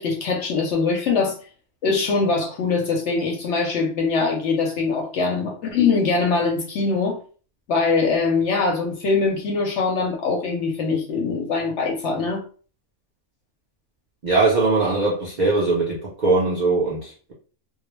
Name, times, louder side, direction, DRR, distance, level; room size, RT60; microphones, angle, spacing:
voice 1, 0.0-1.4 1.8-7.2 7.7-12.4, left 4 dB, 65° left, 0.7 m, -22 dB
voice 2, 14.2-17.3, right 3 dB, 65° right, 0.4 m, -21 dB
2.3 x 2.0 x 3.0 m
omnidirectional pair, 1.5 m